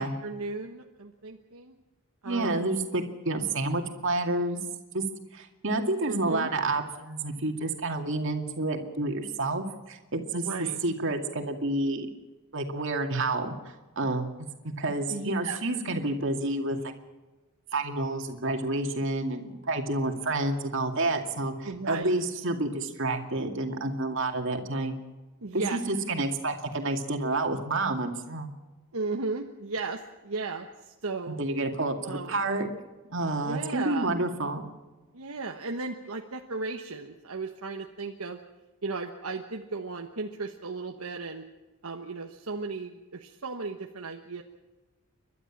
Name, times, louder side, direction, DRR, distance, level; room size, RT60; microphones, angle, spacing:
voice 1, 0.0-1.7 2.2-2.7 6.0-6.5 10.3-10.8 15.1-15.6 21.6-22.2 25.4-25.8 28.9-31.4 32.0-32.3 33.4-34.1 35.1-38.4 38.8-41.4 41.8-44.4, right 3 dB, 75° right, 3 dB, 1.2 m, -35 dB
voice 2, 2.2-4.6 4.9-5.0 5.3-10.5 10.8-12.1 12.5-13.5 14.0-14.3 14.6-16.8 17.7-25.0 25.5-28.5 31.3-32.7 33.1-34.7, right 2 dB, 55° right, 4 dB, 2.3 m, -29 dB
30.0 x 12.5 x 7.3 m, 1.2 s
head